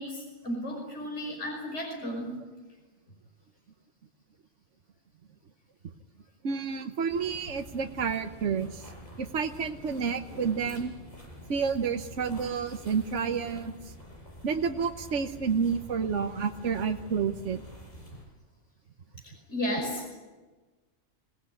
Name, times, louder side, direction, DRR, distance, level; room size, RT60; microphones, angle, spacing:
voice 1, 0.0-2.3 19.5-20.2, equal, 70° left, 0 dB, 5.9 m, -34 dB
voice 2, 6.4-8.9 9.2-10.9 11.5-13.9 14.4-17.6, right 6 dB, 70° right, 6 dB, 1.3 m, -30 dB
sound 1, 7.1-18.2, equal, 35° left, 7.0 m, -47 dB
26.5 x 18.0 x 9.6 m, 1.3 s
omnidirectional pair, 1.3 m